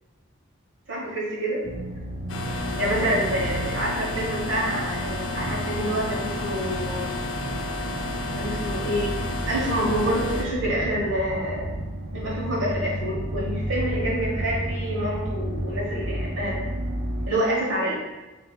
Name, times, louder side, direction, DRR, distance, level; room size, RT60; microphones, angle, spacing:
voice 1, 0.9-1.6 2.8-7.1 8.3-9.2 9.5-11.7 12.1-16.6 17.3-17.9, equal, 70° right, -5 dB, 1.2 m, -27 dB
sound 1, 1.6-17.3, right 1 dB, 40° right, 0.6 m, -32 dB
sound 2, 2.3-10.4, left 2 dB, 75° left, 0.6 m, -31 dB
5.9 x 2.7 x 2.3 m, 1.1 s
head